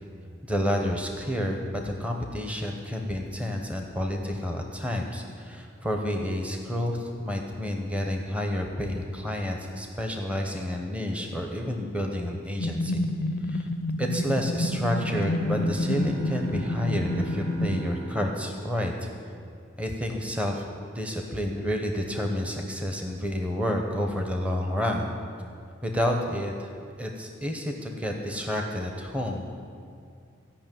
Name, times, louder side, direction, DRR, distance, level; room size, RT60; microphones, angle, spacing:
voice 1, 0.4-13.0 13.4-13.7 14.0-18.9 19.8-20.6 20.9-25.1 25.8-26.7 27.0-29.5, equal, 5° right, 2 dB, 0.8 m, -30 dB
sound 1, 12.6-17.9, left 1 dB, 45° left, 0.4 m, -29 dB
sound 2, 15.1-19.7, right 1 dB, 70° right, 1.5 m, -41 dB
14.5 x 5.9 x 9.1 m, 2.3 s
head